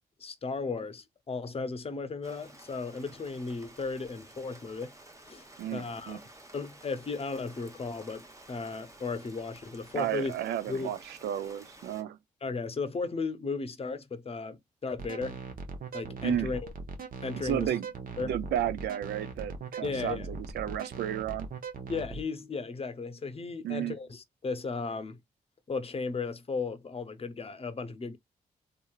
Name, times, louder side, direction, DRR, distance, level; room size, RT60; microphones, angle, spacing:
voice 1, 0.2-4.9 5.3-6.2 6.5-10.3 10.7-10.9 12.4-15.4 15.9-16.7 17.2-17.7 18.2-18.3 19.8-20.3 21.9-25.2 25.7-28.2, left 4 dB, 35° left, 0.7 m, -35 dB
Rain, 2.2-12.0, right 1 dB, 20° right, 0.9 m, -53 dB
voice 2, 5.6-6.2 9.9-12.2 16.2-16.5 17.4-17.9 18.2-21.5 23.6-24.0, right 11 dB, 75° right, 0.4 m, -32 dB
sound 1, 15.0-22.2, right 4 dB, 55° right, 0.8 m, -40 dB
2.8 x 2.5 x 2.3 m
supercardioid pair, 45°, 17 cm